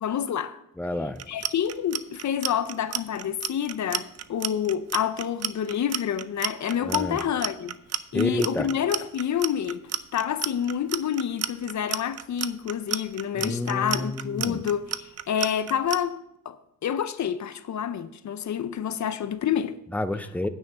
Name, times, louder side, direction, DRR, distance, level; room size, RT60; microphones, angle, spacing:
voice 1, 0.0-0.6 1.3-7.8 8.1-9.8 10.1-16.6 16.8-19.8, left 9 dB, 60° left, 0.5 m, -28 dB
voice 2, 0.8-1.2 6.8-7.2 8.1-8.7 13.4-14.6 19.9-20.5, left 1 dB, 5° left, 0.4 m, -29 dB
Clock, 1.2-16.0, right 9 dB, 50° right, 0.5 m, -31 dB
9.5 x 5.6 x 6.7 m
wide cardioid pair, 125°, 33 cm